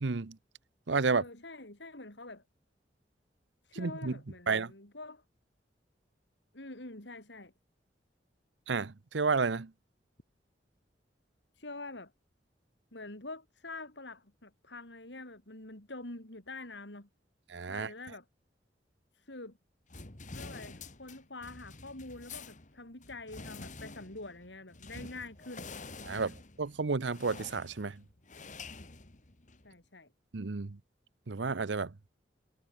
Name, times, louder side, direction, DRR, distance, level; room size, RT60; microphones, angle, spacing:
voice 1, 0.0-0.4 0.9-1.2 3.7-4.1 4.5-4.7 8.7-9.7 17.5-17.9 26.0-26.3 26.6-28.0 30.3-30.8 31.3-31.9, right 4 dB, 85° right, 0.8 m, -31 dB
voice 2, 1.1-2.4 3.6-5.2 6.5-7.5 11.5-12.1 12.9-17.1 17.7-18.3 19.1-19.6 20.3-25.7 26.1-26.3 29.6-30.1, left 2 dB, 80° left, 4.6 m, -46 dB
sound 1, 19.9-29.7, left 3 dB, 45° left, 2.4 m, -48 dB
head